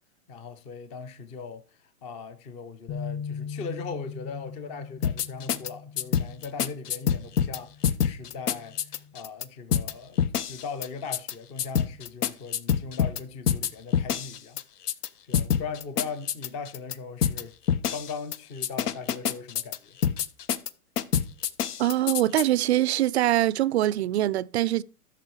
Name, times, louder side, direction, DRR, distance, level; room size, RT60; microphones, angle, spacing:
voice 1, 0.3-1.6 2.0-14.6 15.3-17.6 17.9-20.0, left 5 dB, 15° left, 0.5 m, -39 dB
sound 1, 2.9-9.1, left 6 dB, 35° left, 1.7 m, -41 dB
sound 2, 5.0-5.7 6.0-7.6 7.8-9.4 9.7-9.9 10.2-10.9 11.1-11.3 11.6-13.2 13.5-14.6 14.9-15.1 15.3-16.9 17.2-17.4 17.7-18.4 18.6-19.8 20.0-20.7 21.0-22.4, left 8 dB, 75° left, 1.0 m, -25 dB
voice 2, 21.8-24.8, right 14 dB, 45° right, 0.4 m, -23 dB
13.5 x 6.2 x 4.5 m
hypercardioid pair, 130°, 47 cm